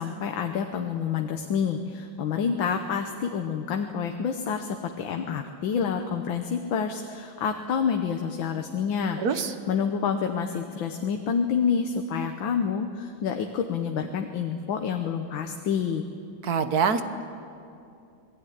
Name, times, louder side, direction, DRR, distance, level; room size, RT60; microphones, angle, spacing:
voice 1, 0.0-9.2 9.7-16.1, left 6 dB, 85° left, 5 dB, 1.8 m, -28 dB
voice 2, 9.2-9.5 16.4-17.0, right 6 dB, 55° right, 10 dB, 1.5 m, -24 dB
26.5 x 19.0 x 9.3 m, 2.6 s
omnidirectional pair, 2.1 m